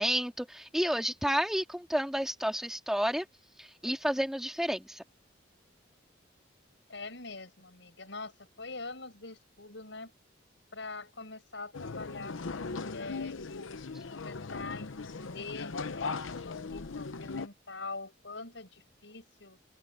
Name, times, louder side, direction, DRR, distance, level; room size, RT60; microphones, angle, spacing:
voice 1, 0.0-3.3 3.6-5.0, equal, ahead, 2.2 m, -30 dB
voice 2, 6.9-10.1 10.7-13.5 14.1-16.2 16.5-19.6, left 3 dB, 65° left, 7.3 m, -44 dB
sound 1, 11.7-17.5, left 4 dB, 85° left, 0.8 m, -38 dB
open air
head